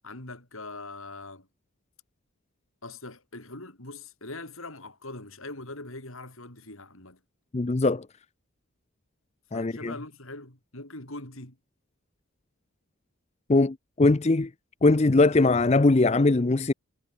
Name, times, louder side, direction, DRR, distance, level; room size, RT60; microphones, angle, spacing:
voice 1, 0.0-1.5 2.8-7.2 9.5-11.6, left 2 dB, 75° left, 7.2 m, -42 dB
voice 2, 7.5-8.0 9.5-9.9 13.5-14.5 14.8-16.7, left 2 dB, 30° left, 0.5 m, -21 dB
head